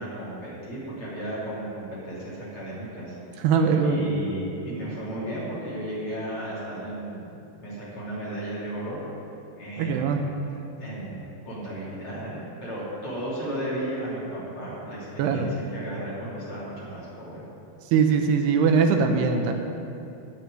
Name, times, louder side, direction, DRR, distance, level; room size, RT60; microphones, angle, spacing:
voice 1, 0.0-3.5 3.8-9.0 9.6-10.2 10.8-17.4, right 1 dB, 35° left, -8 dB, 3.8 m, -34 dB
voice 2, 3.4-4.0 9.8-10.2 15.2-15.5 17.9-19.5, right 5 dB, 80° right, 5 dB, 2.9 m, -21 dB
11.0 x 7.2 x 9.5 m, 2.7 s
omnidirectional pair, 4.8 m